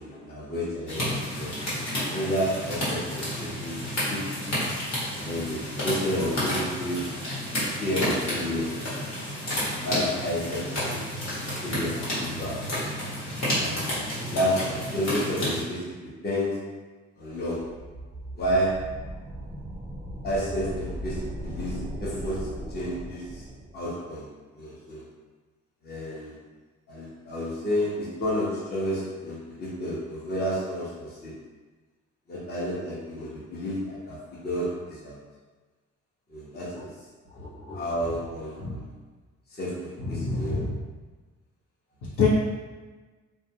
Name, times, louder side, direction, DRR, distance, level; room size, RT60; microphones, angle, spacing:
voice 1, 0.0-1.5 2.1-4.2 5.1-7.1 7.8-8.8 9.4-12.6 13.6-16.0 16.2-16.6 17.2-17.7 18.4-18.9 20.2-23.5 23.7-24.3 24.6-25.0 25.8-26.3 26.9-31.3 32.3-35.2 36.3-36.9 37.7-38.9 39.5-40.7, equal, 35° left, -6 dB, 0.8 m, -31 dB
sound 1, 0.9-15.6, left 1 dB, 60° left, 1.3 m, -31 dB
sound 2, 17.4-23.9, right 1 dB, 15° right, 0.4 m, -37 dB
voice 2, 37.3-37.8 38.6-38.8 40.0-40.8 42.0-42.3, left 5 dB, 75° left, -7 dB, 1.0 m, -28 dB
2.3 x 2.2 x 2.8 m, 1.3 s
cardioid pair, 90°, 30 cm